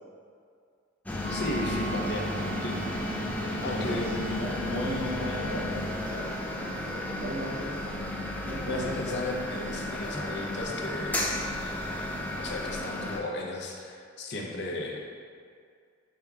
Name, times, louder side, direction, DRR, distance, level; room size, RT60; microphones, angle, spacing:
sound 1, 1.1-13.2, left 1 dB, 10° left, 0.4 m, -33 dB
sound 2, 1.2-7.0, right 6 dB, 30° left, 0.8 m, -45 dB
voice 1, 1.3-2.3 2.6-3.2 3.4-4.1 8.7-11.3 12.3-15.0, left 1 dB, 60° left, 0 dB, 0.6 m, -35 dB
voice 2, 3.6-7.8 8.4-9.3, equal, 85° right, -8 dB, 0.8 m, -36 dB
5.0 x 4.4 x 2.3 m, 2.2 s
head